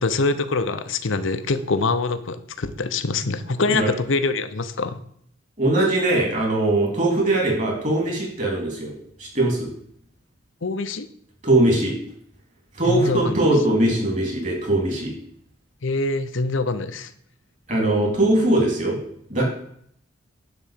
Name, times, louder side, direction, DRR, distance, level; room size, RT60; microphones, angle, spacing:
voice 1, 0.0-5.0 10.6-11.1 12.9-13.4 15.8-17.1, left 3 dB, 70° left, 11 dB, 0.8 m, -24 dB
voice 2, 5.6-8.9 9.2-9.7 11.4-11.9 12.8-15.1 17.7-19.0 19.3-19.4, right 1 dB, 40° right, -1 dB, 3.5 m, -21 dB
10.5 x 4.0 x 7.5 m, 0.66 s
head